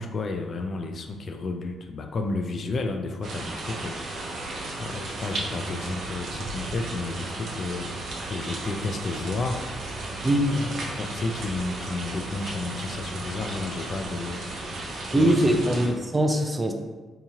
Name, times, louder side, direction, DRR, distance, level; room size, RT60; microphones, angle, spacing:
voice 1, 0.0-9.6 10.5-14.7 15.1-15.6, left 3 dB, 50° left, 5 dB, 0.4 m, -32 dB
sound 1, 3.2-15.9, right 2 dB, 70° right, 0.7 m, -35 dB
voice 2, 15.1-16.7, right 1 dB, 15° right, 4 dB, 0.4 m, -22 dB
3.5 x 2.9 x 2.8 m, 1.2 s
cardioid pair, 90°, 0 cm